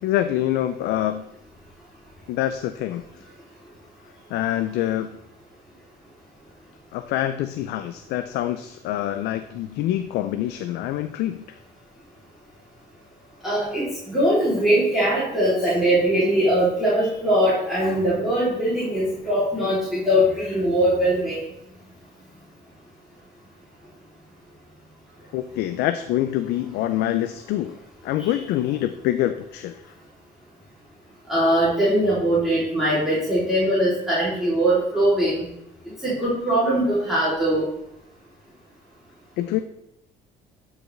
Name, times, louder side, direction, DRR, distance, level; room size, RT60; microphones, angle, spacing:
voice 1, 0.0-1.2 2.3-3.0 4.3-5.1 6.9-11.4 25.3-27.8 28.0-29.9 39.4-39.6, left 13 dB, 85° left, 9 dB, 0.4 m, -25 dB
voice 2, 13.4-21.4 28.2-28.3 31.3-35.4 36.0-37.7, right 1 dB, ahead, -10 dB, 3.0 m, -21 dB
12.5 x 4.8 x 3.2 m, 0.80 s
cardioid pair, 110°, 17 cm